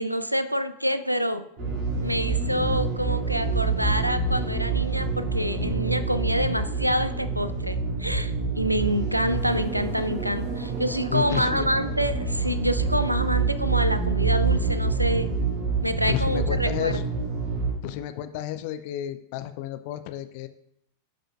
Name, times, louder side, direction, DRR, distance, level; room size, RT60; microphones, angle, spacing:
voice 1, 0.0-1.5 2.0-15.3 15.8-17.0, equal, 90° right, 11 dB, 0.4 m, -27 dB
sound 1, 1.6-17.7, right 4 dB, 40° right, 2.5 m, -27 dB
voice 2, 11.1-11.8 16.1-17.0 17.8-20.5, left 13 dB, 45° left, 10 dB, 0.6 m, -31 dB
12.0 x 5.1 x 2.5 m, 0.74 s
figure-of-eight pair, 90°, 0 cm